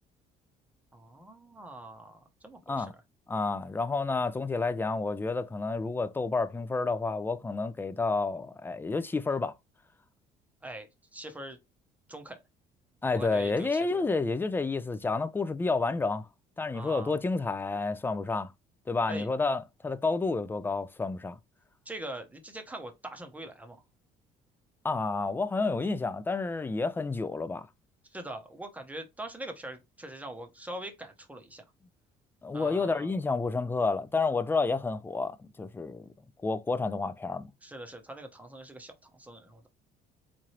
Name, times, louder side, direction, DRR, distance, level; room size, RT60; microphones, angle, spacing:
voice 1, 0.9-2.9 10.6-11.6 12.1-12.4 13.1-14.0 16.7-17.2 19.1-19.3 21.9-23.8 28.1-31.6 32.5-33.1 37.6-39.7, right 1 dB, 10° right, 0.8 m, -43 dB
voice 2, 3.3-9.5 13.0-16.3 16.6-18.5 18.9-21.4 24.8-27.7 32.4-36.1 36.4-37.5, left 3 dB, 10° left, 0.4 m, -30 dB
3.7 x 3.1 x 2.9 m
cardioid pair, 110°, 17 cm